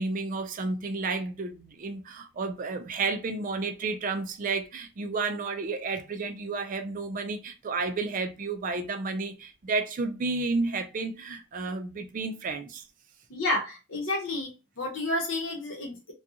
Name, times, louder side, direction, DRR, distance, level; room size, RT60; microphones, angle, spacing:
voice 1, 0.0-12.8, right 3 dB, 40° right, 0.3 m, -31 dB
voice 2, 13.3-16.1, left 2 dB, 65° left, 0.9 m, -30 dB
2.5 x 2.3 x 2.7 m
head